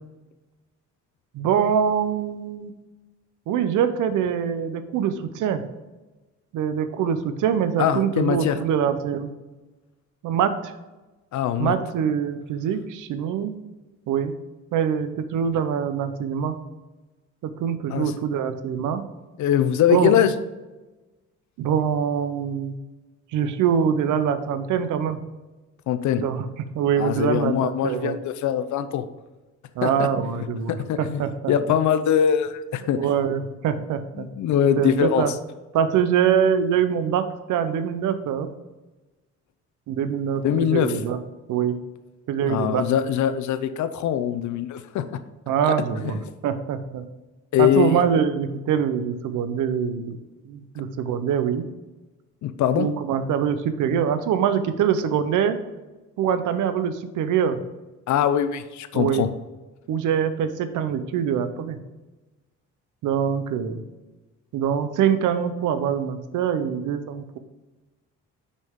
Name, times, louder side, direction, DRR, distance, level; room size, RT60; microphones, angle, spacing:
voice 1, 1.3-2.7 3.5-5.6 6.5-9.3 10.2-10.7 11.6-13.6 14.1-14.3 14.7-16.6 17.4-19.0 19.9-20.1 21.6-22.7 23.3-25.2 26.2-26.4 26.7-28.2 29.8-31.5 32.8-34.3 34.8-35.3 35.7-38.5 39.9-40.4 40.7-41.2 41.5-41.8 42.3-42.8 45.5-47.0 47.6-50.2 50.5-51.6 52.8-55.6 56.2-57.6 58.9-59.3 59.9-61.8 63.0-63.8 64.5-67.4, right 8 dB, 85° right, 10 dB, 0.8 m, -24 dB
voice 2, 7.8-8.6 11.3-11.7 17.9-18.1 19.4-20.3 25.9-26.2 27.0-29.1 29.8-30.1 30.4-33.1 34.2-35.3 40.4-40.9 42.5-45.2 45.6-45.7 46.0-46.2 47.5-48.0 52.4-52.9 58.1-59.3, left 9 dB, 75° left, 11 dB, 0.6 m, -22 dB
6.5 x 5.3 x 3.6 m, 1.1 s
cardioid pair, 90°, 30 cm